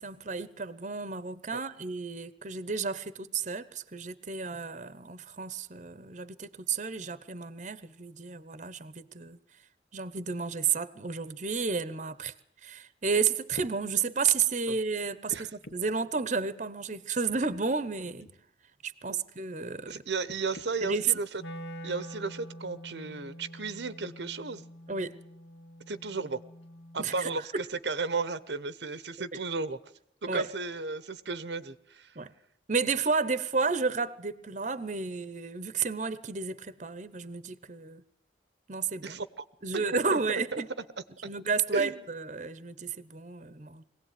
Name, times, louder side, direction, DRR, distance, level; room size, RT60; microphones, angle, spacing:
voice 1, 0.0-9.4 9.9-12.3 12.6-18.3 18.8-20.0 20.8-21.1 24.9-25.2 27.0-27.3 29.3-29.4 30.3-30.5 32.2-32.3 32.7-38.0 38.7-39.2 39.6-40.7 41.2-43.8, right 5 dB, 40° right, 16 dB, 1.0 m, -32 dB
sound 1, 13.0-13.1 13.5-13.8 15.3-16.0 17.2-17.6 18.2-18.4 20.2-20.7 21.6-21.7, left 1 dB, 65° left, 1.4 m, -46 dB
voice 2, 19.9-21.4 21.8-24.6 25.9-26.4 26.9-29.8 30.2-32.2 39.0-39.4 39.7-40.2 40.5-40.6 41.7-42.0, right 3 dB, 70° right, 14 dB, 1.0 m, -34 dB
Wind instrument woodwind instrument, 21.4-27.5, equal, 85° left, 2.4 m, -46 dB
22.5 x 17.0 x 9.3 m, 0.70 s
head